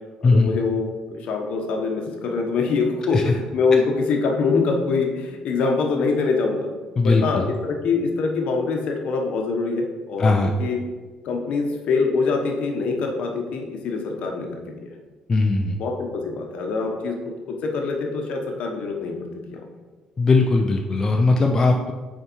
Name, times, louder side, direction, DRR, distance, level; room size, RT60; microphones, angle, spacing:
voice 1, 0.2-6.7 7.0-10.8 11.2-14.9 15.8-17.2 17.5-19.6, left 4 dB, 60° left, 2 dB, 1.0 m, -24 dB
voice 2, 7.0-7.4 10.2-10.5 15.3-15.8 20.2-21.9, left 3 dB, 25° left, 2 dB, 0.4 m, -19 dB
6.5 x 4.5 x 4.5 m, 1.3 s
cardioid pair, 160°, 2 cm